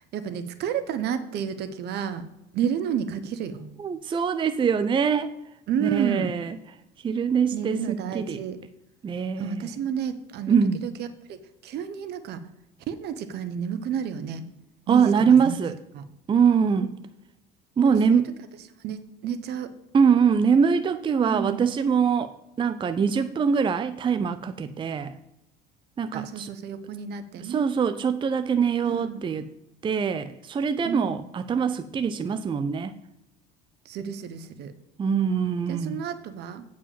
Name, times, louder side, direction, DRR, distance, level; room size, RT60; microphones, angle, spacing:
voice 1, 0.1-2.2 2.5-3.6 5.7-6.3 7.5-8.6 9.4-10.6 10.8-12.4 12.9-14.4 14.9-15.1 15.4-15.6 15.9-16.0 17.8-18.2 18.8-19.7 21.3-21.7 26.1-27.7 28.8-29.2 30.8-31.2 33.9-34.7 35.7-36.6, right 8 dB, 60° right, 10 dB, 1.2 m, -31 dB
voice 2, 3.8-5.3 5.8-6.6 7.0-8.4 9.0-9.7 10.5-10.8 14.9-15.8 16.3-16.9 17.8-18.3 19.9-22.3 22.6-25.1 26.0-26.5 27.4-29.5 29.8-32.9 35.0-36.0, right 6 dB, 25° right, 11 dB, 0.5 m, -23 dB
8.9 x 4.7 x 7.5 m, 0.91 s
supercardioid pair, 95°, 19 cm